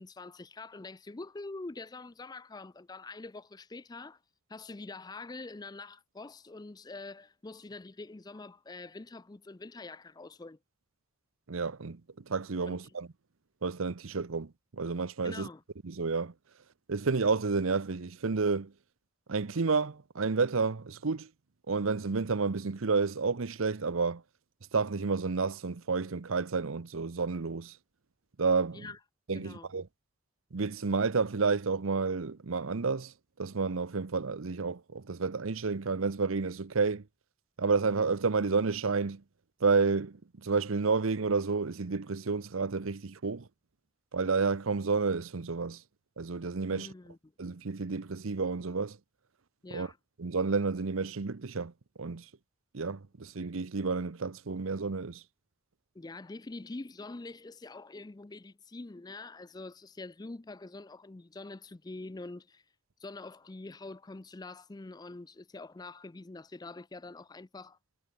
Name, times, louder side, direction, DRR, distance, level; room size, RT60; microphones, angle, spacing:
voice 1, 0.0-4.2 4.5-10.6 12.7-12.9 15.2-15.6 28.7-29.0 29.3-29.7 46.7-47.2 49.6-50.0 55.9-62.6 63.0-67.8, left 3 dB, 20° left, 0.4 m, -45 dB
voice 2, 11.5-12.0 12.3-13.1 13.6-15.5 15.8-16.3 16.9-18.7 19.3-21.3 21.7-24.2 24.7-27.8 28.4-28.9 29.3-29.9 30.5-37.0 37.6-39.2 39.6-43.5 44.1-45.8 46.2-46.9 47.4-49.0 49.7-49.9 50.2-51.7 52.0-52.3 52.7-55.2, right 4 dB, 75° right, 0.8 m, -30 dB
head